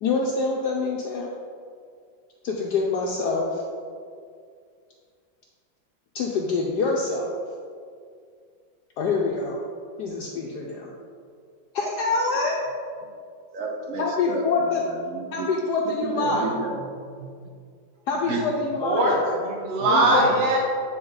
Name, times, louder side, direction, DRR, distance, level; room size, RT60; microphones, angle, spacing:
voice 1, 0.0-1.3 2.4-3.6 6.1-7.3 9.0-9.6 10.0-10.9 11.7-12.7 14.0-14.8 15.3-16.5 18.1-19.2 19.9-20.3, left 3 dB, 65° left, -2 dB, 1.1 m, -25 dB
voice 2, 13.5-14.4 14.7-15.5 16.0-16.8 17.2-17.3 18.3-18.5 19.8-20.4, right 3 dB, 65° right, 1 dB, 0.8 m, -32 dB
voice 3, 18.8-20.6, right 1 dB, 40° right, -2 dB, 1.2 m, -21 dB
9.2 x 4.3 x 3.9 m, 2.2 s
omnidirectional pair, 2.1 m